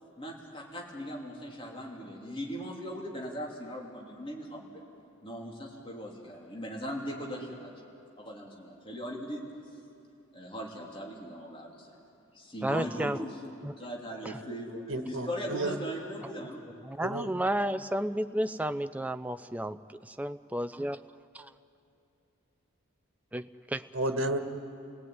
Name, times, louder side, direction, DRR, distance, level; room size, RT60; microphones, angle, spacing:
voice 1, 0.2-4.7 5.2-9.4 10.3-12.0 12.3-16.6, equal, 25° left, -2 dB, 3.5 m, -39 dB
voice 2, 12.6-13.2 13.6-13.7 14.2-14.4 16.8-19.8 20.0-21.0 21.3-21.5 23.3-23.8, right 1 dB, 5° right, 10 dB, 0.5 m, -32 dB
voice 3, 14.9-15.7 17.0-17.3 23.9-24.4, right 1 dB, 65° right, 5 dB, 1.6 m, -31 dB
29.5 x 18.0 x 9.5 m, 2.7 s
head